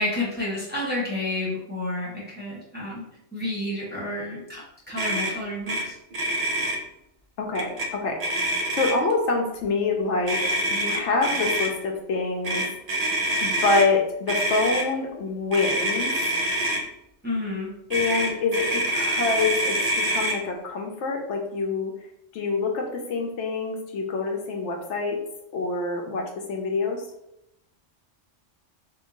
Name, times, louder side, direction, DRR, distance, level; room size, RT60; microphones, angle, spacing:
voice 1, 0.0-3.0 3.3-4.6 4.9-5.9 17.2-17.7, left 1 dB, 10° right, -7 dB, 0.8 m, -30 dB
Motor vehicle (road), 5.0-5.3 5.7-5.8 6.1-6.8 7.5-7.9 8.2-9.1 10.3-11.7 12.4-13.9 14.3-14.8 15.5-16.8 17.9-20.4, right 1 dB, 60° right, 0.4 m, -26 dB
voice 2, 7.4-8.5 8.7-12.6 13.4-16.1 17.9-21.9 22.3-25.2 25.5-27.0, left 3 dB, 75° left, 2 dB, 0.9 m, -26 dB
2.9 x 2.2 x 3.7 m, 0.81 s
omnidirectional pair, 1.2 m